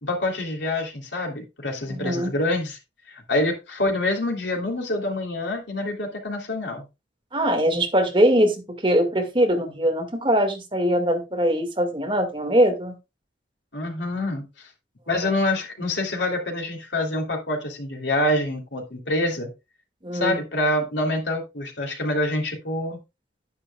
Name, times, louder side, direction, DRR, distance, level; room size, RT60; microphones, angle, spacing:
voice 1, 0.0-2.8 3.3-6.8 13.7-14.5 15.1-19.5 20.1-23.0, left 1 dB, 70° left, 3.1 m, -26 dB
voice 2, 1.9-2.3 7.3-13.0 15.2-15.3 20.0-20.4, equal, 25° right, 2.0 m, -22 dB
10.0 x 10.0 x 2.3 m
head